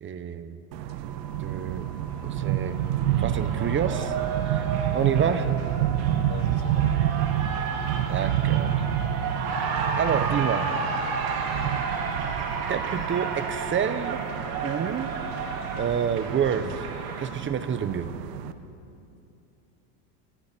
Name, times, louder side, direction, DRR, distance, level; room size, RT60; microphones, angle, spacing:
voice 1, 0.0-0.6 1.4-1.9 2.2-2.8 3.2-4.2 4.4-4.6 4.9-5.4 8.1-8.8 10.0-10.7 12.7-14.2 14.6-15.1 15.7-16.8 17.2-18.1, right 8 dB, 25° right, 11 dB, 1.2 m, -28 dB
sound 1, 0.7-18.5, right 11 dB, 75° right, 1.4 m, -29 dB
sound 2, 0.9-17.8, left 1 dB, 75° left, 7.1 m, -51 dB
Cheering, 2.1-17.3, right 5 dB, 45° right, 3.8 m, -32 dB
voice 2, 5.0-5.5 6.3-7.1, left 6 dB, 50° left, 1 dB, 3.5 m, -41 dB
29.5 x 25.5 x 4.6 m, 2.6 s
supercardioid pair, 125°, 49 cm